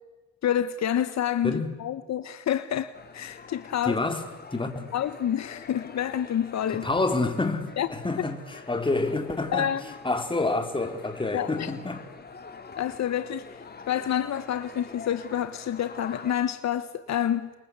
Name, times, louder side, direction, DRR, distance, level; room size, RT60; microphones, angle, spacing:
voice 1, 0.4-4.0 4.9-6.9 7.8-7.9 9.5-9.8 11.3-11.7 12.8-13.6 13.9-17.5, left 10 dB, 65° left, 1.3 m, -28 dB
voice 2, 1.4-1.7 3.8-4.2 4.5-4.9 6.7-9.7 10.0-12.0, left 2 dB, 15° left, 3.3 m, -28 dB
sound 1, 2.9-16.4, left 5 dB, 30° left, 2.9 m, -46 dB
29.0 x 23.0 x 8.3 m
cardioid pair, 90°, 30 cm